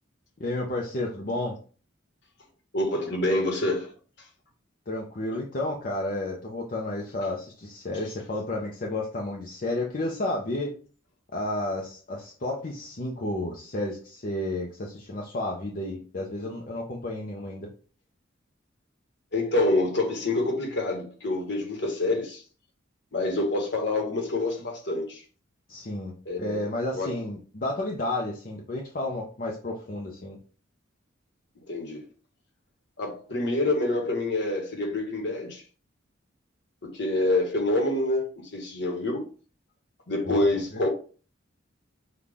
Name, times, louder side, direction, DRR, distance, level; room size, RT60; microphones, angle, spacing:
voice 1, 0.4-1.6 4.9-10.7 11.3-17.7 25.7-30.4 40.2-40.5, left 1 dB, 45° left, 0.7 m, -31 dB
voice 2, 2.7-3.9 8.0-8.1 19.3-22.4 23.1-25.2 26.2-27.1 31.7-32.0 33.0-35.6 36.8-39.2 40.1-40.9, left 2 dB, 60° left, 1.3 m, -27 dB
5.7 x 2.4 x 3.5 m
head